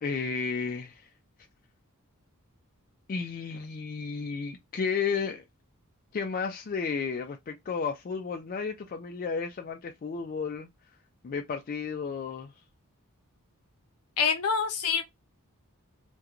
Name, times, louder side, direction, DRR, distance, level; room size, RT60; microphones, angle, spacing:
voice 1, 0.0-1.0 3.1-5.4 6.1-10.7 11.2-12.5, left 5 dB, 40° left, 0.4 m, -32 dB
voice 2, 14.2-15.0, left 6 dB, 75° left, 0.7 m, -26 dB
2.4 x 2.2 x 2.8 m
head